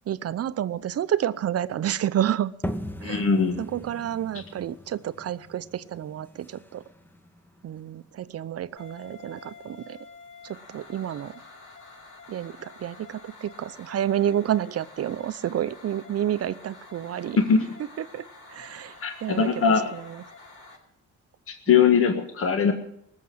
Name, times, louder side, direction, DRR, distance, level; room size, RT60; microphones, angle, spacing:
voice 1, 0.1-2.5 3.0-3.3 3.6-6.8 7.6-10.0 10.4-11.3 12.3-17.4 18.0-20.2 21.7-21.8, right 10 dB, 55° right, 15 dB, 0.7 m, -30 dB
sound 1, 2.6-8.1, equal, 5° left, 1.0 m, -39 dB
voice 2, 3.0-3.6 17.5-17.7 19.0-19.9 21.5-22.7, left 6 dB, 45° left, 6 dB, 1.6 m, -21 dB
sound 2, 8.8-20.8, left 3 dB, 75° left, 5.9 m, -48 dB
19.0 x 7.5 x 7.8 m, 0.72 s
cardioid pair, 90°, 30 cm